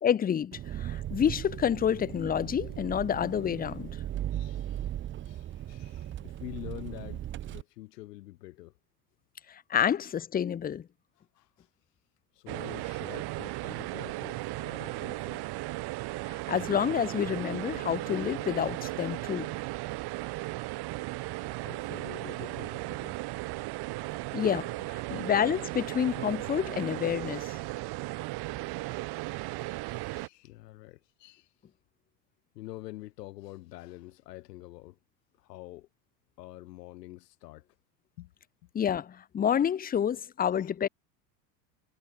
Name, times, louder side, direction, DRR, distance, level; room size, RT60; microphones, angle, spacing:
voice 1, 0.0-4.0 9.5-10.9 16.3-19.6 24.3-27.6 38.7-40.9, left 8 dB, 20° left, 0.8 m, -29 dB
Engine, 0.5-7.6, right 12 dB, 25° right, 0.7 m, -37 dB
voice 2, 4.3-4.9 5.2-8.7 11.2-11.7 12.3-15.5 21.2-23.2 25.0-25.3 25.9-26.0 29.8-31.5 32.6-35.0 35.4-35.9 36.4-37.7 38.2-38.3 38.6-38.7 40.6-40.7, left 17 dB, 75° left, 5.5 m, -47 dB
sound 1, 12.5-30.3, right 20 dB, 50° right, 5.6 m, -36 dB
hypercardioid pair, 105°, 49 cm